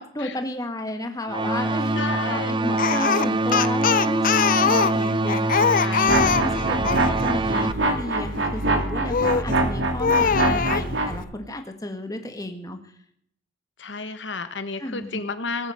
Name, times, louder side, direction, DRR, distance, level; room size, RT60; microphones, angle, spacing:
voice 1, 0.0-5.7 6.2-12.8 14.8-15.2, left 1 dB, 20° left, 6 dB, 1.8 m, -32 dB
sound 1, 1.3-7.7, right 2 dB, 25° right, 0.6 m, -25 dB
voice 2, 1.9-2.7 5.7-6.4 10.2-10.9 13.8-15.7, left 4 dB, 75° left, 10 dB, 1.3 m, -33 dB
Speech, 2.8-7.1 9.1-9.5 10.0-10.9, left 6 dB, 45° left, 0.5 m, -22 dB
sound 2, 6.1-11.2, right 2 dB, 80° right, 2.8 m, -24 dB
19.0 x 8.8 x 7.9 m, 0.66 s
head